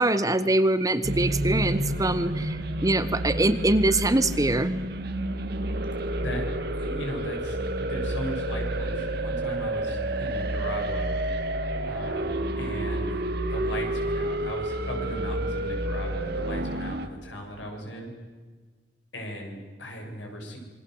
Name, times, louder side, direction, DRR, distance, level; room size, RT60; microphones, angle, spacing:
voice 1, 0.0-4.7, right 2 dB, 20° right, 12 dB, 1.1 m, -23 dB
sound 1, 1.0-17.1, right 1 dB, 60° right, 1.8 m, -29 dB
voice 2, 6.7-11.1 11.8-13.2 13.5-18.1 19.1-20.6, equal, 85° left, 2 dB, 7.4 m, -37 dB
27.5 x 23.5 x 8.0 m, 1.4 s
head